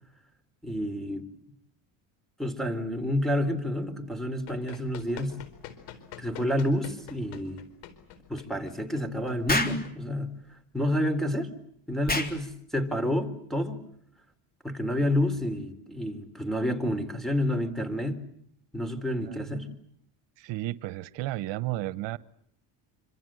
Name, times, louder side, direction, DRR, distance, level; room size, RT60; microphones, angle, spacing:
voice 1, 0.6-1.3 2.4-5.4 6.2-7.6 8.3-10.3 10.7-11.5 11.9-13.8 14.6-18.2 18.7-19.7, left 1 dB, ahead, 3.9 m, -29 dB
Run, 4.4-10.5, left 9 dB, 90° left, 4.5 m, -47 dB
Explosion, 9.5-9.8 12.1-12.4, left 2 dB, 20° left, 3.7 m, -27 dB
voice 2, 20.4-22.2, right 16 dB, 80° right, 1.1 m, -33 dB
26.5 x 26.0 x 7.8 m
cardioid pair, 100°, 43 cm